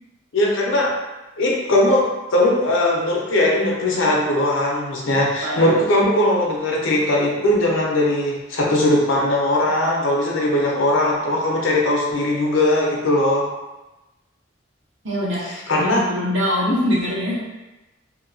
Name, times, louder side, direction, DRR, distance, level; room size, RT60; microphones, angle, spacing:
voice 1, 0.3-0.9 1.4-13.5 15.7-16.0, left 1 dB, 75° left, -3 dB, 0.6 m, -19 dB
voice 2, 5.4-5.8 15.0-17.5, left 1 dB, 70° right, -6 dB, 0.9 m, -23 dB
2.8 x 2.2 x 2.6 m, 1.1 s
head